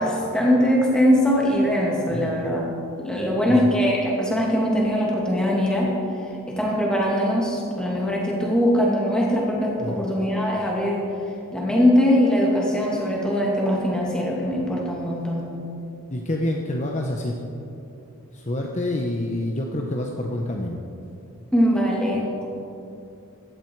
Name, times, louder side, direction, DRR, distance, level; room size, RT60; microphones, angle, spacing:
voice 1, 0.0-2.7 3.0-5.9 6.5-11.1 11.5-15.5 21.5-22.3, equal, 5° left, -3 dB, 2.5 m, -21 dB
voice 2, 9.8-10.1 16.1-17.4 18.3-20.8, left 1 dB, 35° left, 1 dB, 0.9 m, -27 dB
16.0 x 12.5 x 4.7 m, 2.7 s
head